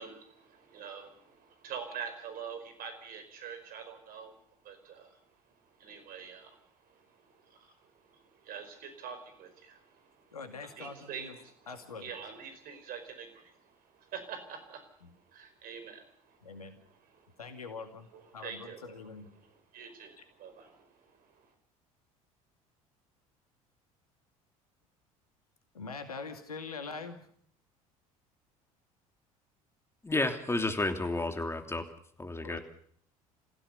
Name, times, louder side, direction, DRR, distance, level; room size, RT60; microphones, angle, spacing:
voice 1, 0.0-4.4 4.6-17.4 18.1-19.0 19.3-21.5, right 7 dB, 50° right, 8 dB, 5.1 m, -46 dB
voice 2, 10.3-11.4 11.7-12.1 16.4-16.8 17.4-18.1 18.3-19.3 25.7-27.2 32.4-32.6, left 4 dB, 85° left, 8 dB, 2.3 m, -43 dB
voice 3, 30.0-31.8 32.2-32.6, left 2 dB, 15° left, 6 dB, 3.0 m, -31 dB
27.0 x 16.0 x 6.8 m, 0.62 s
figure-of-eight pair, 65°, 19 cm